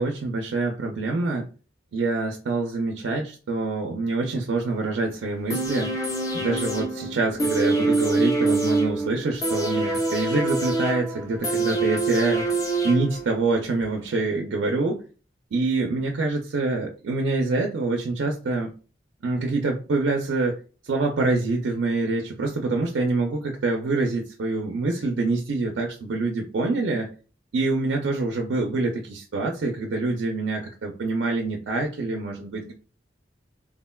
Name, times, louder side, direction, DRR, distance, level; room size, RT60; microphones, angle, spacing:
voice 1, 0.0-1.5 1.9-6.0 6.3-12.5 12.8-15.0 15.5-18.8 19.2-20.6 20.8-27.1 27.5-32.7, right 3 dB, 80° right, 2 dB, 0.4 m, -26 dB
sound 1, 5.5-13.5 13.8-13.9, right 2 dB, 20° left, 0.5 m, -25 dB
3.6 x 2.1 x 2.2 m, 0.36 s
head